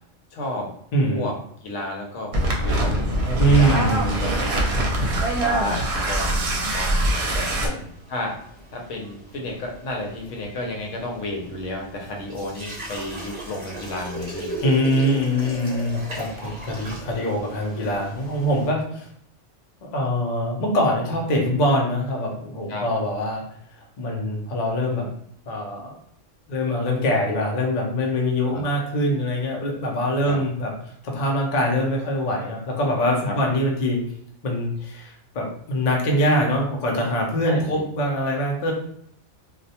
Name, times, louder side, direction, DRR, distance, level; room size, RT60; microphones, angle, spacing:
voice 1, 0.3-0.7 1.1-3.9 4.2-4.8 5.3-7.5 8.1-8.4 8.7-14.6 22.7-22.9 28.5-28.6 30.3-30.4 33.2-33.4 37.4-37.8, left 1 dB, 85° left, 1 dB, 1.0 m, -32 dB
voice 2, 0.9-1.2 3.4-4.2 7.6-7.8 14.6-19.1 19.8-23.4 23.8-25.1 25.5-26.0 26.5-30.7 31.0-34.0 34.4-38.7, equal, 50° left, -1 dB, 0.6 m, -23 dB
sound 1, 2.3-7.7, right 1 dB, 70° right, 0.8 m, -23 dB
sound 2, 2.9-18.7, right 1 dB, 30° right, 0.7 m, -39 dB
2.3 x 2.1 x 2.7 m, 0.67 s
omnidirectional pair, 1.2 m